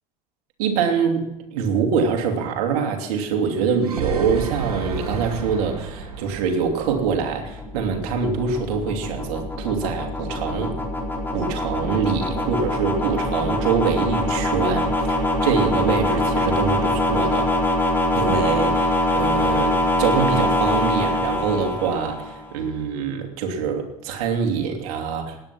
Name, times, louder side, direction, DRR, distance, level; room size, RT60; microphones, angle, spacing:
voice 1, 0.6-10.8 11.3-17.5 18.1-25.5, right 6 dB, 70° right, 3 dB, 2.9 m, -24 dB
sound 1, 3.6-7.8, right 5 dB, 90° right, 1.9 m, -32 dB
sound 2, 6.3-22.5, left 1 dB, 10° left, 4.5 m, -23 dB
17.5 x 10.5 x 6.2 m, 0.92 s
hypercardioid pair, 70°, 19 cm